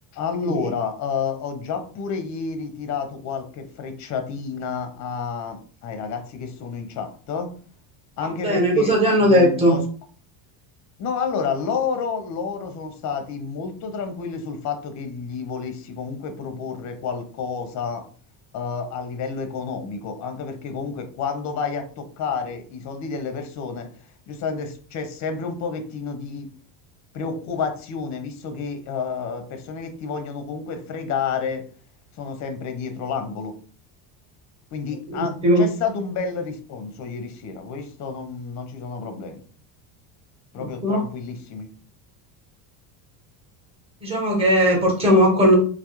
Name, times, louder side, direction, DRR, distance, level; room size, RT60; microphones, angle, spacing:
voice 1, 0.1-7.5 8.2-9.8 11.0-18.1 18.5-23.9 24.3-26.5 27.1-31.6 32.2-33.5 34.7-39.4 40.5-41.7, left 5 dB, 35° left, 7 dB, 0.5 m, -30 dB
voice 2, 8.4-9.8 35.1-35.6 40.6-41.0 44.0-45.6, equal, 10° right, -2 dB, 1.0 m, -18 dB
2.2 x 2.0 x 2.9 m, 0.43 s
supercardioid pair, 115°, 48 cm